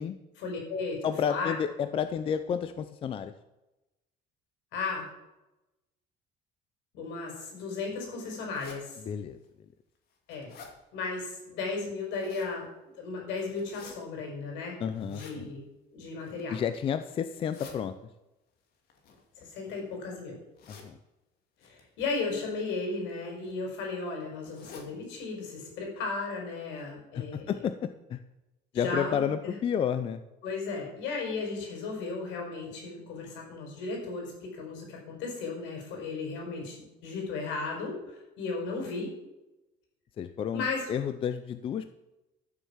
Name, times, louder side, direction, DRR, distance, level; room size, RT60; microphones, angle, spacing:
voice 1, 0.4-1.0 1.2-1.5 4.7-5.1 6.9-9.0 10.3-10.5 10.9-12.7 12.9-14.8 15.1-15.6 15.9-16.6 19.4-20.4 21.6-27.5 28.7-29.5 30.4-38.0 38.4-39.1 40.5-41.0, left 4 dB, 70° left, 1 dB, 5.8 m, -35 dB
voice 2, 1.0-3.3 9.0-9.4 14.8-15.5 16.5-17.9 20.7-21.0 27.1-28.2 28.7-30.2 40.2-41.9, left 8 dB, 30° left, 11 dB, 0.5 m, -31 dB
sound 1, 8.5-8.8 9.4-9.5 10.0-10.7 11.9-12.5 13.5-13.9 14.9-15.4 16.1-16.5 17.2-17.8 18.9-19.9 20.6-20.9 21.6-21.8 22.8-23.1 23.4-23.5 23.8-23.9 24.4-24.9 25.3-25.4 25.7-25.8 26.4-26.5 26.8-26.9, left 5 dB, 50° left, 2.6 m, -50 dB
13.0 x 7.3 x 7.2 m, 0.98 s
cardioid pair, 170°, 19 cm